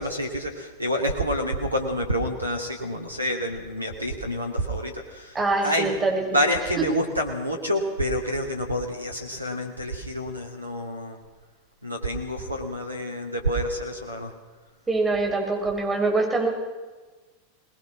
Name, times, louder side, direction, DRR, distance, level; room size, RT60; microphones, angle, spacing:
voice 1, 0.0-5.4 5.6-5.9 6.3-11.2 11.8-14.3, equal, 85° right, 2 dB, 2.7 m, -28 dB
voice 2, 5.3-6.2 14.9-16.5, right 3 dB, 15° right, 0 dB, 6.7 m, -24 dB
24.0 x 20.5 x 6.2 m, 1.2 s
figure-of-eight pair, 90°, 0 cm